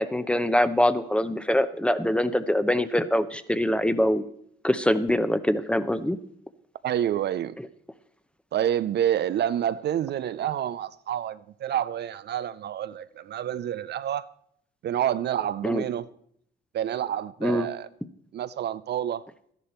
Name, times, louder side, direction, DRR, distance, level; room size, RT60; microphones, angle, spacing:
voice 1, 0.0-4.2 4.6-6.2 15.6-15.8 17.4-17.7, left 1 dB, 5° left, 0.7 m, -24 dB
voice 2, 6.8-7.6 8.5-14.3 14.8-16.1 16.7-17.9 18.3-19.3, right 10 dB, 60° right, 0.4 m, -28 dB
12.5 x 10.5 x 4.3 m
cardioid pair, 90°, 20 cm